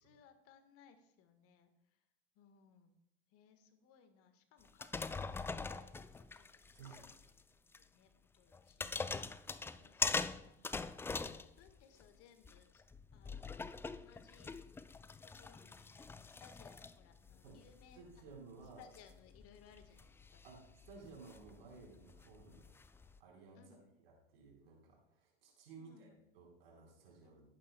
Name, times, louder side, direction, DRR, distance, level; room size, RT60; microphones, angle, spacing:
voice 1, 0.0-1.7 2.3-3.0 3.3-7.2 7.5-8.9 9.7-12.8 13.1-14.5 15.2-18.0 18.8-20.4 23.5-23.8 25.8-26.2 27.2-27.3, left 7 dB, 50° left, 8 dB, 1.5 m, -65 dB
sound 1, 4.7-7.4 7.7-7.8 8.5-12.1 12.4-23.2, left 4 dB, 10° left, 0.3 m, -44 dB
voice 2, 6.7-7.1 17.4-17.6 17.9-18.8 20.4-22.7 23.2-23.8 24.0-26.1 26.3-27.4, right 4 dB, 75° right, -1 dB, 4.5 m, -56 dB
17.5 x 8.9 x 2.3 m, 0.90 s
hypercardioid pair, 80°, 29 cm